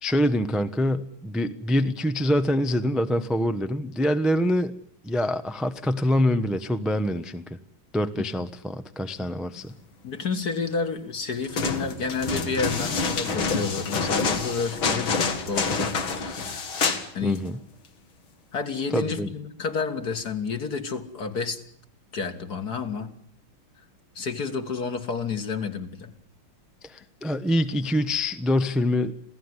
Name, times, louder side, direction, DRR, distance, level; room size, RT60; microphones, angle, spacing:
voice 1, 0.0-4.7 5.0-7.6 7.9-9.7 17.2-17.6 18.9-19.3 26.8-29.1, left 1 dB, ahead, 10 dB, 0.4 m, -25 dB
voice 2, 10.0-16.8 17.1-17.4 18.5-21.6 22.1-23.1 24.2-26.1, left 5 dB, 50° left, 7 dB, 2.5 m, -30 dB
sound 1, 11.4-17.1 17.4-17.5, left 4 dB, 75° left, 2.9 m, -27 dB
27.0 x 17.0 x 9.8 m, 0.65 s
omnidirectional pair, 2.2 m